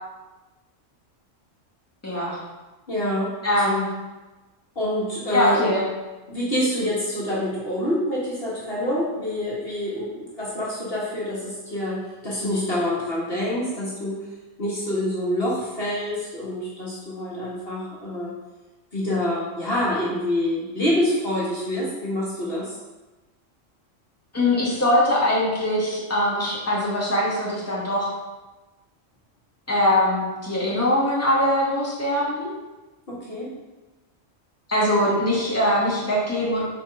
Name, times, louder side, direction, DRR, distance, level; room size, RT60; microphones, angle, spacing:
voice 1, 2.0-2.4 3.4-3.9 5.3-5.8 24.3-28.1 29.7-32.5 34.7-36.6, left 1 dB, 10° left, -7 dB, 2.2 m, -22 dB
voice 2, 2.9-3.7 4.8-5.7 6.3-14.3 14.6-18.3 18.9-22.7 33.1-33.5, left 1 dB, 50° left, -7 dB, 2.0 m, -26 dB
5.6 x 5.2 x 5.9 m, 1.1 s
omnidirectional pair, 1.3 m